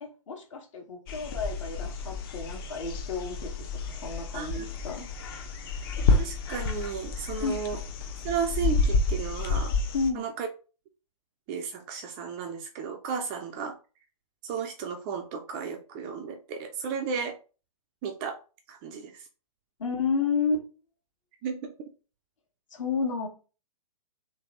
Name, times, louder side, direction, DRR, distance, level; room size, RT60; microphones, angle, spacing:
voice 1, 0.0-3.5 3.9-5.1 7.4-7.6 9.9-10.3 19.8-20.7 22.7-23.3, left 5 dB, 55° left, 2 dB, 1.3 m, -31 dB
sound 1, 1.1-10.1, left 3 dB, 40° left, 0.7 m, -29 dB
voice 2, 4.3-4.7 6.2-7.8 8.2-9.8 10.1-10.5 11.5-13.8 14.4-17.4 18.0-18.4 18.7-19.3 21.4-21.9, right 6 dB, 20° right, 5 dB, 0.3 m, -34 dB
3.3 x 3.1 x 2.9 m, 0.35 s
figure-of-eight pair, 120°, 19 cm